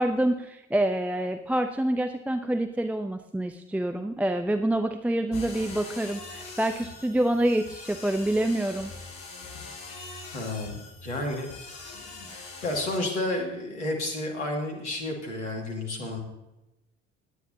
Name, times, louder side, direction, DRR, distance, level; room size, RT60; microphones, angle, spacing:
voice 1, 0.0-8.9, right 1 dB, 5° right, 7 dB, 0.6 m, -27 dB
sound 1, 5.3-13.0, left 3 dB, 65° left, 2.6 m, -43 dB
voice 2, 10.3-11.5 11.9-16.2, left 1 dB, 80° left, 1 dB, 2.2 m, -31 dB
19.0 x 9.3 x 2.7 m, 0.93 s
figure-of-eight pair, 60°, 35 cm